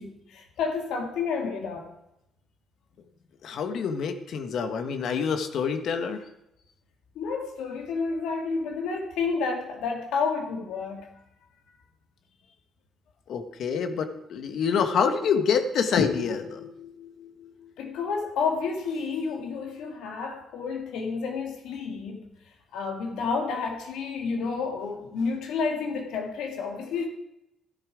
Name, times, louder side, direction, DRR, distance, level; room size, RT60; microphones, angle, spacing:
voice 1, 0.0-1.9 7.1-11.1 17.8-22.3 22.7-27.1, left 5 dB, 85° left, 3 dB, 2.5 m, -30 dB
voice 2, 3.4-6.2 13.3-17.7, left 6 dB, 70° left, 8 dB, 1.4 m, -27 dB
13.0 x 10.5 x 5.0 m, 0.84 s
cardioid pair, 90°, 0 cm